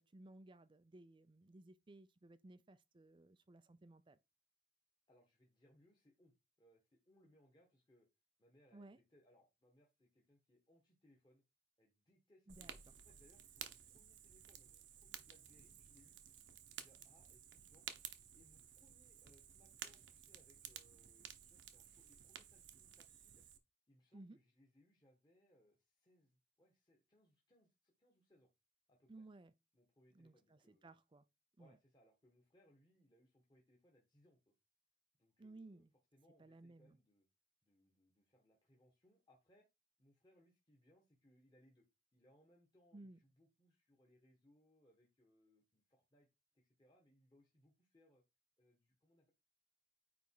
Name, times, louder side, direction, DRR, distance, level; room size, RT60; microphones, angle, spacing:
voice 1, 0.0-4.2 8.7-9.0 12.5-12.8 24.1-24.4 29.1-29.5 30.1-31.2 31.6-31.8 35.4-35.9 36.4-37.0 42.9-43.2, right 2 dB, 25° right, 0.5 m, -59 dB
voice 2, 5.1-8.1 8.4-11.4 11.8-16.2 16.7-17.9 18.3-23.4 23.9-28.5 28.9-29.1 29.7-30.9 31.6-34.5 35.2-35.9 36.1-37.3 37.6-39.7 40.0-46.3 46.5-48.2 48.6-49.3, equal, 25° left, 1.6 m, -72 dB
Fire, 12.5-23.6, right 9 dB, 85° right, 1.1 m, -55 dB
9.3 x 3.4 x 4.8 m
head